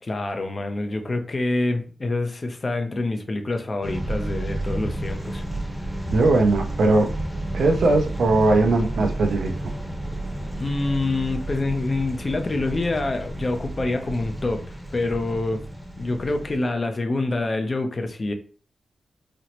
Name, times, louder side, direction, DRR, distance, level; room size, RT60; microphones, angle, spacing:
voice 1, 0.0-5.4 10.6-14.6 14.9-15.7 16.0-18.3, left 2 dB, 35° left, 0.5 m, -26 dB
sound 1, 3.8-16.6, right 1 dB, ahead, 0.8 m, -31 dB
voice 2, 6.1-7.1 7.5-9.5, right 2 dB, 80° right, 0.5 m, -19 dB
4.1 x 2.0 x 2.9 m
wide cardioid pair, 130°, 0 cm